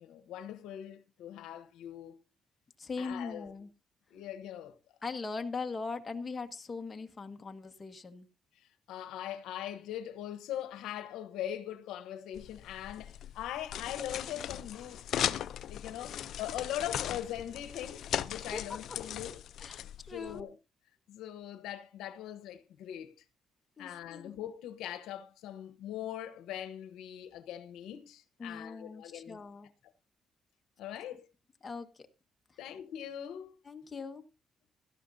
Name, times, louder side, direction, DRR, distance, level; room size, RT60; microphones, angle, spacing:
voice 1, 0.0-2.2 3.0-3.5 4.1-4.8 8.9-19.4 20.1-20.6 21.1-23.1 23.8-29.4 30.8-31.3 32.6-33.6, left 11 dB, 90° left, 1.0 m, -41 dB
voice 2, 2.8-3.7 5.0-8.3 18.4-19.0 19.6-20.5 23.8-24.3 28.4-29.7 31.6-32.1 33.6-34.2, left 4 dB, 30° left, 1.6 m, -40 dB
sound 1, 12.4-20.4, left 10 dB, 70° left, 0.6 m, -38 dB
16.5 x 13.0 x 2.7 m
cardioid pair, 90°, 0 cm